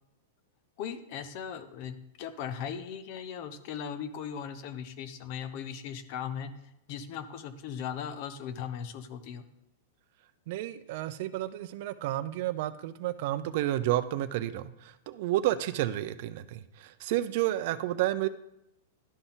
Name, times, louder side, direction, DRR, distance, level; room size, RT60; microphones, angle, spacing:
voice 1, 0.8-6.5 6.9-9.4, left 8 dB, 50° left, 11 dB, 0.7 m, -38 dB
voice 2, 10.5-14.7 15.1-18.3, right 14 dB, 55° right, 13 dB, 0.5 m, -31 dB
12.0 x 4.0 x 3.9 m, 0.83 s
hypercardioid pair, 135°, 0 cm